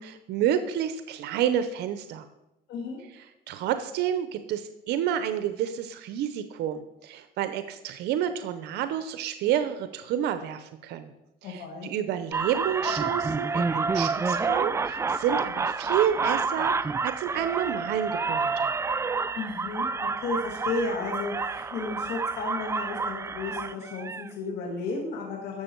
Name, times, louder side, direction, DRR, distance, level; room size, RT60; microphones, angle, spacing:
voice 1, 0.0-2.3 3.5-11.1 11.4-18.7, right 10 dB, 80° right, 10 dB, 0.7 m, -29 dB
voice 2, 2.7-3.0 11.4-11.9 19.4-25.6, left 3 dB, 75° left, 1 dB, 2.0 m, -33 dB
sound 1, 12.3-24.3, right 4 dB, 15° right, 0.3 m, -29 dB
12.0 x 7.0 x 4.5 m, 0.91 s
cardioid pair, 110°, 17 cm